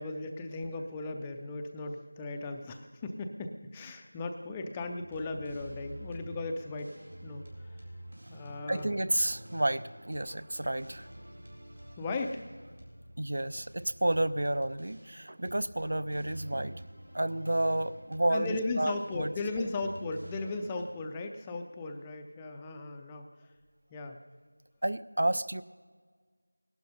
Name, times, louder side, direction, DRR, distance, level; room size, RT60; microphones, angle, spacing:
voice 1, 0.0-7.0 7.2-7.5 8.3-8.9 12.0-12.4 18.3-23.3 23.9-24.2, left 2 dB, 10° left, 4 dB, 0.5 m, -37 dB
sound 1, 4.8-20.8, right 1 dB, 80° right, 4.5 m, -48 dB
voice 2, 8.7-11.1 13.2-16.8 17.1-19.3 24.8-25.6, right 1 dB, 50° right, 16 dB, 0.6 m, -30 dB
18.0 x 12.0 x 5.4 m, 1.5 s
figure-of-eight pair, 170°, 0 cm